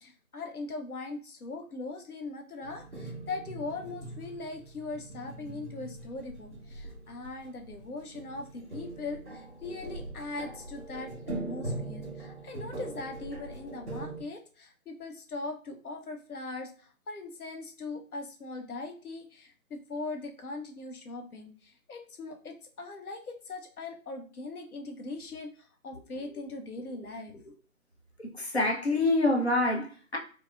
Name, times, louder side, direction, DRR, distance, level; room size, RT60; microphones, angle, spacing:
voice 1, 0.0-11.1 11.4-16.7 17.1-21.5 21.9-25.5 25.8-27.6, left 3 dB, 75° left, 0.8 m, -40 dB
sound 1, 2.6-14.2, right 2 dB, 50° right, 0.8 m, -41 dB
voice 2, 28.4-30.2, left 2 dB, 45° left, 0.6 m, -26 dB
3.5 x 2.0 x 2.4 m
figure-of-eight pair, 180°, 44 cm